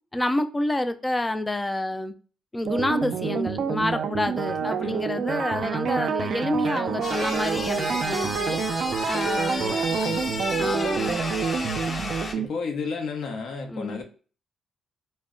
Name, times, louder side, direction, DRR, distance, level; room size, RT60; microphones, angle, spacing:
voice 1, 0.1-2.1 2.5-8.6 9.1-9.9 10.6-11.2 13.7-14.0, left 1 dB, 15° left, 0.3 m, -28 dB
sound 1, 2.6-12.5, right 6 dB, 60° right, 0.3 m, -28 dB
sound 2, 7.0-12.3, left 2 dB, 35° left, 0.7 m, -32 dB
voice 2, 9.9-10.4 12.4-14.0, left 4 dB, 70° left, 0.7 m, -32 dB
2.1 x 2.1 x 3.6 m
cardioid pair, 90°, 0 cm